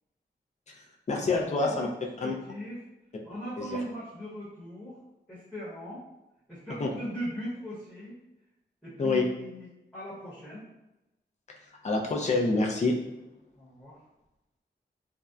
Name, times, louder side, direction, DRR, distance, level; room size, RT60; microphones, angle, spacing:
voice 1, 1.1-1.9 2.2-2.3 3.6-3.8 6.8-6.9 9.0-9.3 11.8-12.9, left 3 dB, 40° left, 0 dB, 0.4 m, -26 dB
voice 2, 2.2-2.8 3.2-5.0 5.3-6.0 6.5-8.2 8.8-10.6 13.5-14.0, equal, 5° left, -9 dB, 0.9 m, -39 dB
2.6 x 2.1 x 2.3 m, 0.98 s
wide cardioid pair, 75°, 19 cm